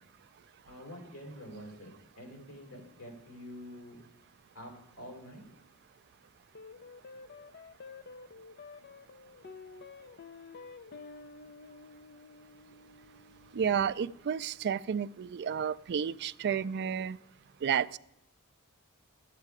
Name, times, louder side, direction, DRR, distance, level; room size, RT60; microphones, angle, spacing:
voice 1, 0.7-4.0 4.5-4.7 5.0-5.4, equal, 85° left, 1 dB, 4.1 m, -47 dB
sound 1, 6.5-15.2, left 4 dB, 45° left, 0.6 m, -51 dB
voice 2, 13.5-17.2 17.6-18.0, right 7 dB, 50° right, 14 dB, 0.3 m, -31 dB
12.5 x 8.4 x 4.8 m, 0.85 s
head